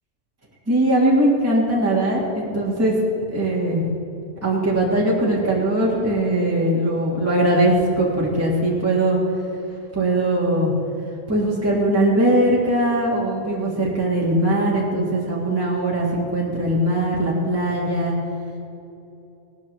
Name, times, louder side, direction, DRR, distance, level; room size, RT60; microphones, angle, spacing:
voice 1, 0.7-2.9 3.3-3.9 4.4-9.2 9.9-10.7 11.3-18.2, right 1 dB, 10° right, -4 dB, 1.6 m, -20 dB
18.0 x 13.0 x 3.1 m, 2.9 s
omnidirectional pair, 1.3 m